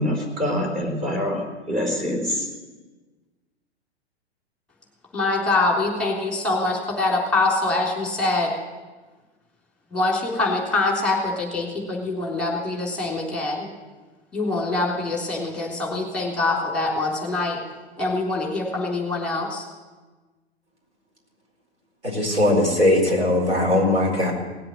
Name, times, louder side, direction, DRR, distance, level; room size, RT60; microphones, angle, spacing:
voice 1, 0.0-2.5, left 1 dB, 25° right, 1 dB, 3.7 m, -25 dB
voice 2, 5.1-8.5 9.9-13.7 14.3-17.6 18.0-19.6, left 2 dB, 5° left, -1 dB, 3.7 m, -24 dB
voice 3, 22.0-24.3, left 1 dB, 85° right, -1 dB, 4.7 m, -20 dB
18.5 x 7.8 x 7.8 m, 1.3 s
figure-of-eight pair, 105°, 33 cm